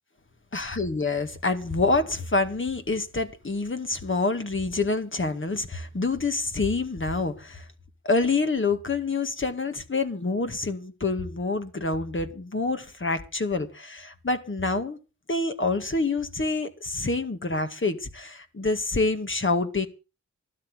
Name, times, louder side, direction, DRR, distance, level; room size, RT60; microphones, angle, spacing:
voice 1, 0.5-7.6 8.0-15.0 15.3-19.9, left 3 dB, 40° left, 2.1 m, -27 dB
12.5 x 12.5 x 6.3 m
cardioid pair, 65°, 30 cm